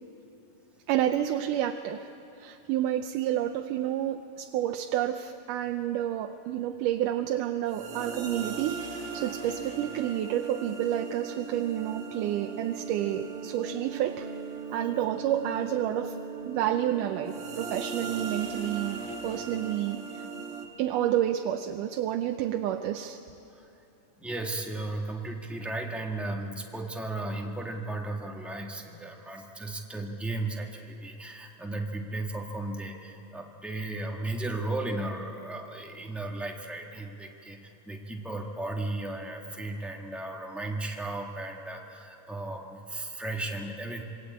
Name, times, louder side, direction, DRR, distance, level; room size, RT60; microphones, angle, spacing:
voice 1, 0.9-2.1 2.4-8.8 9.1-14.3 14.7-16.2 16.5-20.3 20.8-23.2, right 11 dB, 80° right, 5 dB, 2.2 m, -29 dB
sound 1, 7.6-20.7, right 4 dB, 45° right, 3.5 m, -38 dB
voice 2, 24.2-44.0, right 2 dB, ahead, 0 dB, 0.4 m, -35 dB
27.5 x 21.5 x 8.6 m, 2.9 s
omnidirectional pair, 3.8 m